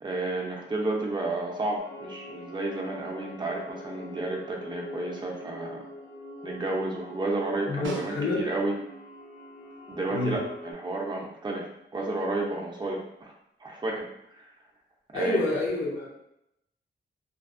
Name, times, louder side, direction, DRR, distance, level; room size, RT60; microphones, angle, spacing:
voice 1, 0.0-5.8 6.4-8.7 9.9-13.3 13.6-14.1 14.3-14.5 15.1-15.4, right 2 dB, 25° right, -1 dB, 0.5 m, -31 dB
sound 1, 1.8-10.7, left 1 dB, 35° left, 0.4 m, -43 dB
voice 2, 7.7-8.4 10.1-10.4 15.1-16.1, left 2 dB, 80° left, -9 dB, 0.7 m, -28 dB
Snare drum, 7.8-8.8 13.2-13.3, right 4 dB, 85° right, 0.5 m, -40 dB
2.5 x 2.0 x 2.5 m, 0.80 s
wide cardioid pair, 100°, 19 cm